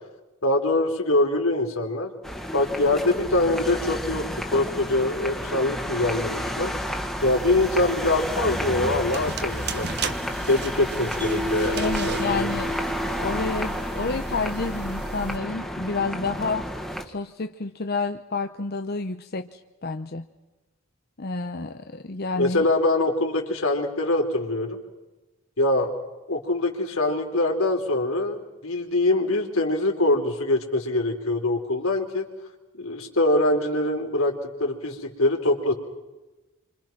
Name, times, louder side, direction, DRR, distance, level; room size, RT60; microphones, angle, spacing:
voice 1, 0.4-2.1 2.5-4.2 4.5-6.7 7.2-9.9 10.5-12.5 22.4-24.8 25.6-25.9 26.3-32.3 32.8-34.3 34.6-35.7, left 2 dB, 80° left, 3 dB, 3.7 m, -23 dB
sound 1, 2.2-17.0, equal, ahead, 1.9 m, -31 dB
sound 2, 7.2-15.4, right 4 dB, 50° right, 1.5 m, -36 dB
Mallet percussion, 11.2-14.5, equal, 20° right, 0.9 m, -33 dB
voice 2, 11.7-12.7 13.1-16.7 17.1-20.3 21.2-22.6, left 3 dB, 45° left, 6 dB, 0.9 m, -29 dB
29.0 x 25.5 x 6.0 m, 1.1 s
head